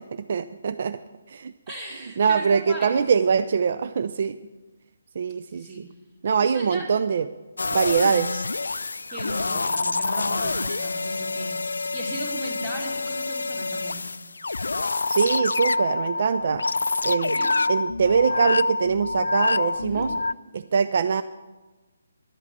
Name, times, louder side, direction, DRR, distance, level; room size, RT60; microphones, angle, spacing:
voice 1, 0.1-1.0 1.3-1.5 2.2-4.4 5.2-5.9 6.2-7.2 7.7-8.4 15.1-16.6 17.0-20.1 20.5-21.2, right 6 dB, 45° right, 12 dB, 0.4 m, -23 dB
voice 2, 1.7-3.2 5.5-5.8 6.4-6.9 9.1-14.0 17.3-17.5 19.8-20.1, right 1 dB, 25° right, -5 dB, 2.4 m, -36 dB
sound 1, 7.6-20.3, left 3 dB, 65° left, 0.3 m, -27 dB
11.5 x 8.1 x 8.6 m, 1.2 s
figure-of-eight pair, 140°, 0 cm